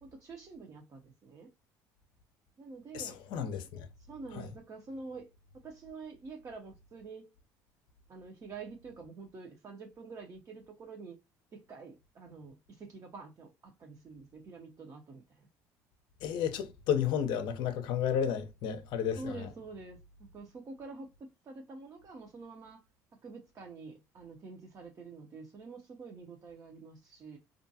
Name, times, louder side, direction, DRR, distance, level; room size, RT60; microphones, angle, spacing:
voice 1, 0.0-1.5 2.6-3.2 4.1-5.3 5.6-7.3 8.1-11.2 11.5-15.4 19.2-20.0 20.3-21.1 21.5-22.8 23.2-27.4, right 4 dB, 40° right, 0.6 m, -47 dB
voice 2, 2.9-3.9 4.3-4.5 16.2-19.5, left 8 dB, 65° left, 0.5 m, -32 dB
2.5 x 2.2 x 2.7 m
supercardioid pair, 85°, 8 cm